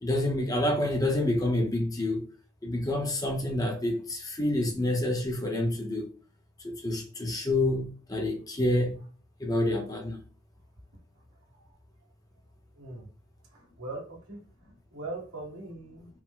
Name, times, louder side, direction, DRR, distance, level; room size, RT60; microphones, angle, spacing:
voice 1, 0.0-2.2 2.6-6.1 6.6-9.0 9.4-10.2, left 1 dB, 15° left, 0.6 m, -28 dB
voice 2, 12.8-13.1 13.5-16.1, right 2 dB, 80° right, 1.7 m, -41 dB
4.6 x 2.1 x 3.7 m
head